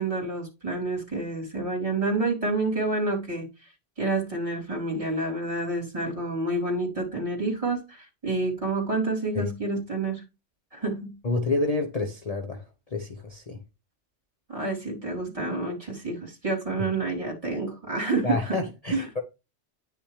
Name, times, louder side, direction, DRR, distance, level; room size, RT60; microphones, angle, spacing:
voice 1, 0.0-3.5 4.0-10.2 10.7-11.2 14.5-18.6 18.9-19.1, right 2 dB, 30° right, 3.6 m, -28 dB
voice 2, 11.2-12.6 12.9-13.6 18.2-19.2, left 3 dB, 35° left, 1.0 m, -28 dB
10.0 x 5.8 x 3.3 m
omnidirectional pair, 1.2 m